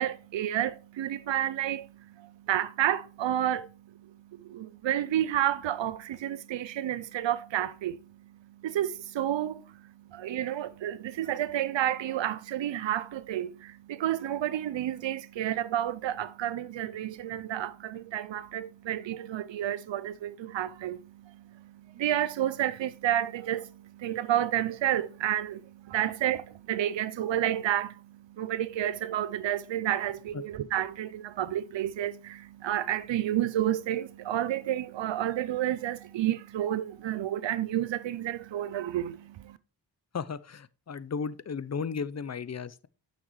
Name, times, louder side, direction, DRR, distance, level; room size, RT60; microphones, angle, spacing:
voice 1, 0.0-39.6, right 11 dB, 90° right, 0.5 m, -31 dB
voice 2, 40.1-42.9, left 5 dB, 40° left, 0.6 m, -35 dB
9.3 x 6.4 x 3.1 m
cardioid pair, 50°, 43 cm